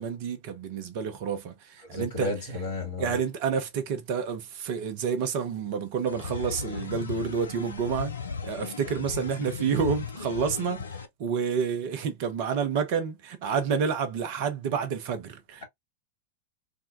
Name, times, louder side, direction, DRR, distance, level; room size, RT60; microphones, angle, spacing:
voice 1, 0.0-2.3 3.0-8.1 8.4-15.6, right 6 dB, 45° right, 0.7 m, -29 dB
voice 2, 1.8-3.2, left 2 dB, 55° left, 2.0 m, -32 dB
sound 1, 6.1-11.1, left 5 dB, 70° left, 0.5 m, -36 dB
3.5 x 2.2 x 2.5 m
figure-of-eight pair, 90°, 0 cm